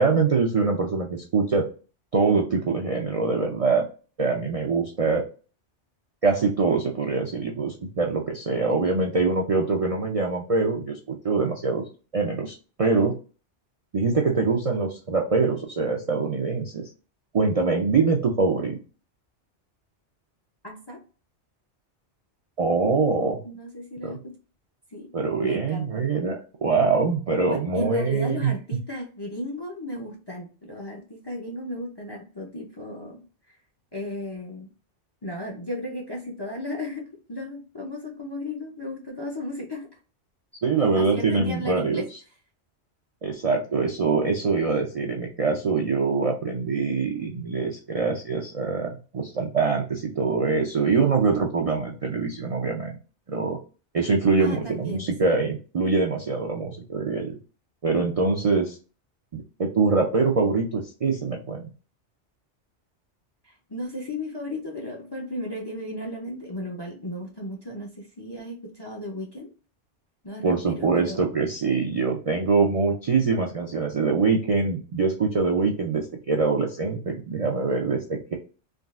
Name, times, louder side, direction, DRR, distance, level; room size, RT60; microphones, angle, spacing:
voice 1, 0.0-1.7 2.1-3.8 4.2-5.2 6.2-11.8 12.1-13.1 13.9-16.9 17.3-18.8 22.6-23.4 24.0-24.2 25.1-28.5 40.6-42.2 43.2-53.0 53.3-53.6 53.9-57.4 57.8-58.8 59.3-61.7 70.4-78.3, right 4 dB, 50° right, 0 dB, 0.4 m, -24 dB
voice 2, 20.6-21.0 23.4-24.4 24.9-25.1 25.4-26.0 27.5-33.3 33.9-34.7 35.2-40.0 40.9-42.0 54.4-55.3 63.4-69.5 70.2-71.2, left 1 dB, 30° left, 0 dB, 0.4 m, -35 dB
3.6 x 2.3 x 2.3 m, 0.36 s
omnidirectional pair, 1.2 m